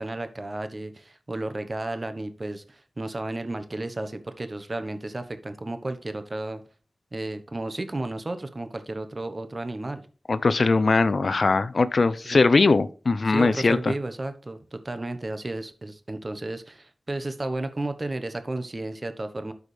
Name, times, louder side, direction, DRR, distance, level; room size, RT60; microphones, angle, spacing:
voice 1, 0.0-6.6 7.1-10.0 12.2-12.4 13.3-19.5, right 2 dB, 45° right, 1.1 m, -33 dB
voice 2, 10.3-13.8, left 3 dB, 70° left, 0.5 m, -20 dB
12.5 x 4.9 x 3.3 m
cardioid pair, 40°, 0 cm